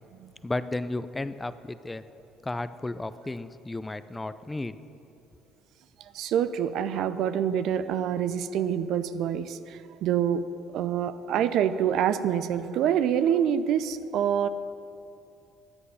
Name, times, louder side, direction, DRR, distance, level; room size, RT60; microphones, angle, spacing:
voice 1, 0.4-2.0 2.4-4.8, left 2 dB, 15° left, 14 dB, 0.6 m, -33 dB
voice 2, 6.1-10.4 10.7-14.5, right 9 dB, 60° right, 13 dB, 0.5 m, -26 dB
13.5 x 9.8 x 5.7 m, 2.6 s
hypercardioid pair, 55°, 0 cm